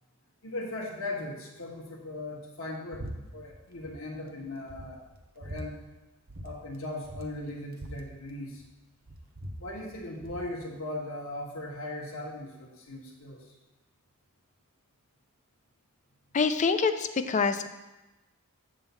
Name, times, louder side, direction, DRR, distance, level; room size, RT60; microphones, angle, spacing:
voice 1, 0.4-3.0 3.3-5.0 5.3-5.8 6.4-8.6 9.6-13.5, left 1 dB, 65° left, -1 dB, 1.5 m, -38 dB
sound 1, 2.9-3.2 3.4-4.0 4.3-4.4 4.7-5.7 6.3-6.5 6.7-6.8 7.0-8.7 9.0-10.5, right 1 dB, 45° right, 0.8 m, -42 dB
voice 2, 16.3-17.7, left 5 dB, 35° left, 9 dB, 0.4 m, -26 dB
8.0 x 3.8 x 6.8 m, 1.1 s
head